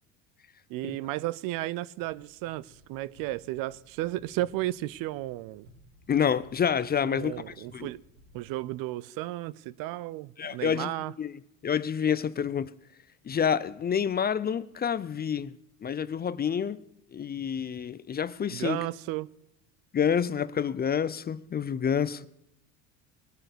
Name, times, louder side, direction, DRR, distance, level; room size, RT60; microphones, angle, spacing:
voice 1, 0.7-5.7 7.0-8.0 8.3-11.1 18.5-19.3, right 16 dB, 60° right, 0.6 m, -34 dB
sound 1, 2.0-8.4, equal, 75° right, 5.7 m, -58 dB
voice 2, 6.1-7.9 10.4-12.7 13.2-15.5 15.8-16.8 17.1-18.8 19.9-22.3, left 7 dB, 25° left, 0.5 m, -28 dB
20.5 x 8.8 x 6.8 m
hypercardioid pair, 75°, 39 cm